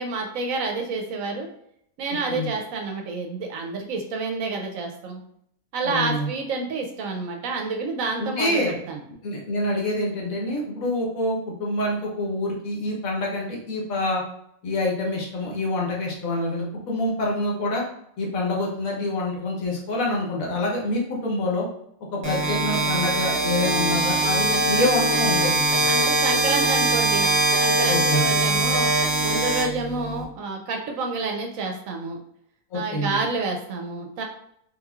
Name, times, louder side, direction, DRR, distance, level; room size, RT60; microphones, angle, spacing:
voice 1, 0.0-1.5 2.0-5.2 5.7-9.0 25.8-27.3 27.6-28.9 29.2-32.2 32.7-34.2, right 3 dB, 70° right, 2 dB, 0.9 m, -29 dB
voice 2, 5.8-6.3 8.2-8.7 9.2-14.2 14.6-17.8 18.2-21.6 22.1-25.9 27.9-28.2 32.7-33.2, left 1 dB, 65° left, -2 dB, 1.3 m, -26 dB
sound 1, 22.2-30.2, right 1 dB, 30° right, 0.9 m, -22 dB
3.5 x 3.0 x 2.3 m, 0.72 s
omnidirectional pair, 1.6 m